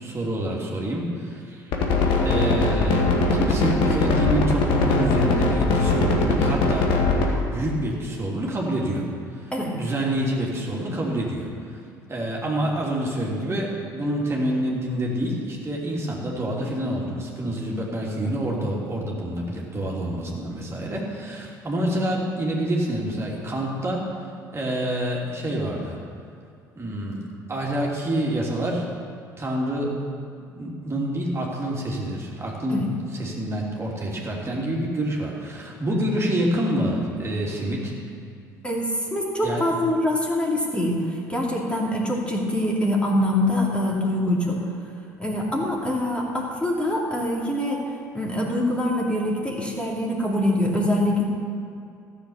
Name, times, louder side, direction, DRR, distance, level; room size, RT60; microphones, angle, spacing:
voice 1, 0.0-1.7 2.2-6.9 7.4-11.8 12.1-24.1 24.5-26.0 26.8-27.2 27.5-28.8 29.4-29.9 30.4-32.8 33.1-37.9 39.4-39.6, right 1 dB, 25° right, -3 dB, 2.7 m, -27 dB
sound 1, 1.7-7.3, left 3 dB, 55° left, 1.9 m, -20 dB
voice 2, 38.6-44.6 45.2-47.8 48.1-51.2, left 1 dB, 10° left, -3 dB, 2.6 m, -24 dB
14.0 x 7.3 x 7.0 m, 2.4 s
figure-of-eight pair, 60°, 10 cm